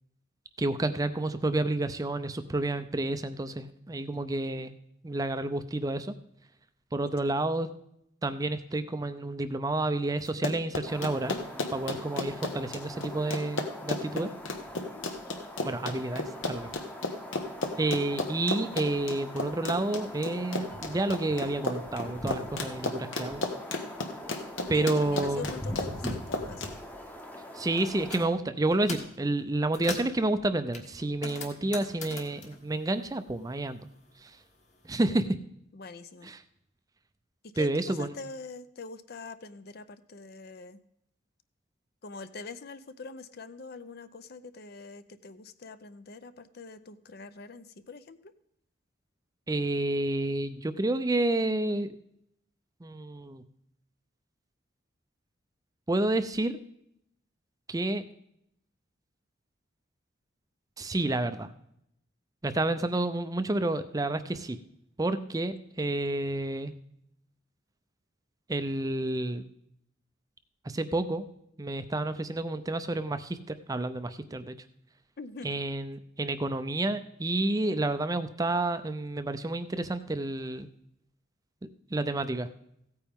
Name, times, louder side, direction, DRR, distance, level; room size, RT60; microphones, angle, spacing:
voice 1, 0.6-4.7 5.0-6.1 6.9-7.7 8.2-11.4 11.7-14.3 15.6-16.7 17.8-23.5 24.7-25.4 27.5-33.8 34.2-34.3 34.8-35.3 36.2-36.4 37.6-38.1 49.5-51.9 52.8-53.4 55.9-56.6 57.7-58.0 60.8-61.5 62.4-64.6 65.0-66.7 68.5-69.5 70.6-71.3 71.6-74.5 75.4-80.7 81.6-82.5, right 2 dB, 20° right, 11 dB, 0.5 m, -30 dB
voice 2, 4.1-4.7 7.2-7.4 14.9-15.4 24.7-26.6 35.7-36.3 37.5-40.8 42.0-48.3 75.2-75.6, left 4 dB, 50° left, 12 dB, 0.6 m, -44 dB
Run, 10.3-26.7, left 3 dB, 80° left, 1.2 m, -33 dB
sound 1, 10.8-28.3, left 1 dB, 10° left, 0.9 m, -42 dB
sound 2, 27.8-28.3 28.7-29.2 29.5-30.2 30.7-33.7 33.9-35.1, left 3 dB, 35° left, 1.6 m, -41 dB
15.5 x 8.9 x 3.6 m, 0.75 s
head